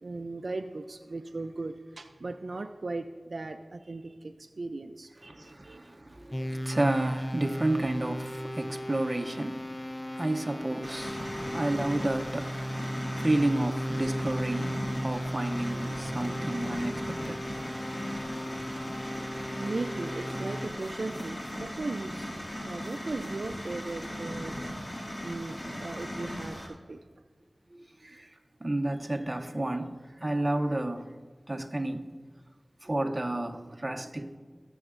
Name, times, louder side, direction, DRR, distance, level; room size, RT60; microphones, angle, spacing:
voice 1, 0.0-5.8 19.5-22.4 22.6-24.5 24.8-27.0, right 3 dB, 75° right, 0.4 m, -38 dB
voice 2, 5.2-17.6 27.7-28.3 28.6-31.1 31.5-32.1 32.8-34.4, right 1 dB, 35° right, 0.7 m, -31 dB
sound 1, 6.3-20.7, equal, 20° left, 0.5 m, -36 dB
sound 2, 10.8-26.7, equal, 40° left, 2.2 m, -38 dB
20.0 x 7.0 x 2.5 m
wide cardioid pair, 45°, 0 cm